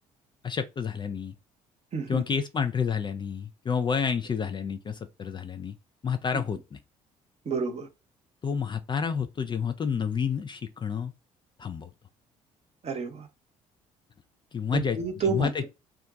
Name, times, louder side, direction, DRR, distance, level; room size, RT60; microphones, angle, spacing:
voice 1, 0.4-1.3 2.1-5.8 6.0-6.8 8.4-11.1 11.6-11.9 14.5-15.0 15.3-15.7, left 6 dB, 25° left, 0.4 m, -29 dB
voice 2, 1.9-2.2 6.3-6.4 7.4-7.9 12.8-13.3 14.7-15.7, right 4 dB, 35° right, 0.9 m, -30 dB
2.3 x 2.2 x 3.9 m
figure-of-eight pair, 50°, 18 cm